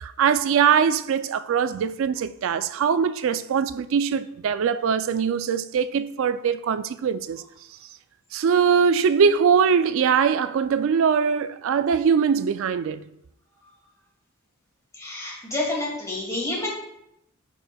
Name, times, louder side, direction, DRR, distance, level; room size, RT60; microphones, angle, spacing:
voice 1, 0.0-7.4 8.3-13.0, right 6 dB, 65° right, 0.3 m, -22 dB
voice 2, 14.9-16.7, left 2 dB, 15° left, 2.2 m, -29 dB
11.5 x 4.4 x 2.3 m
head